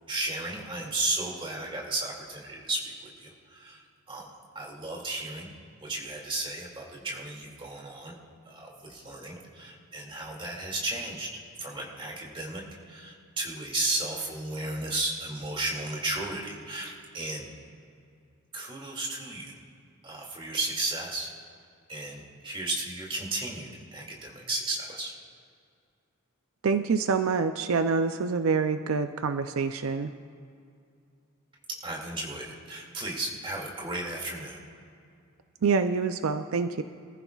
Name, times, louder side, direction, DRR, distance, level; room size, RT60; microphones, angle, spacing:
voice 1, 0.1-5.5 5.8-8.2 8.5-11.3 11.6-17.5 18.5-19.5 20.0-21.3 21.9-25.1 31.7-34.6, right 2 dB, 25° right, -2 dB, 2.3 m, -34 dB
voice 2, 26.6-30.1 35.6-36.8, right 5 dB, 75° right, 9 dB, 0.5 m, -26 dB
25.0 x 14.5 x 2.4 m, 2.4 s
head